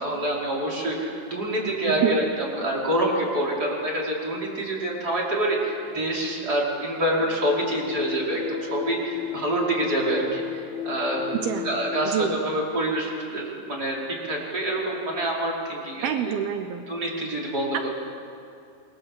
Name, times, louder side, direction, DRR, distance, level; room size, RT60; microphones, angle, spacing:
voice 1, 0.0-11.3 11.6-14.0 14.2-16.3 16.9-17.9, right 1 dB, 20° right, -3 dB, 4.8 m, -26 dB
sound 1, 7.2-12.1, left 11 dB, 80° left, 3.0 m, -34 dB
voice 2, 12.0-12.4 16.0-16.9 17.7-17.9, right 9 dB, 80° right, 6 dB, 2.2 m, -26 dB
29.0 x 23.0 x 7.6 m, 2.6 s
omnidirectional pair, 5.9 m